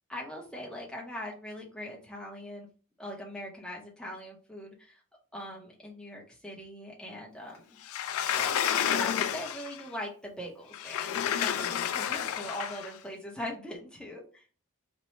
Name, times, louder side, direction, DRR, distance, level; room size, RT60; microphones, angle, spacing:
voice 1, 0.1-2.7 3.0-5.0 5.3-7.8 8.3-14.4, equal, 5° left, -3 dB, 0.7 m, -41 dB
Sliding door, 7.9-9.8 10.7-12.9, left 9 dB, 70° left, 0.3 m, -30 dB
3.1 x 2.2 x 4.2 m, 0.39 s
head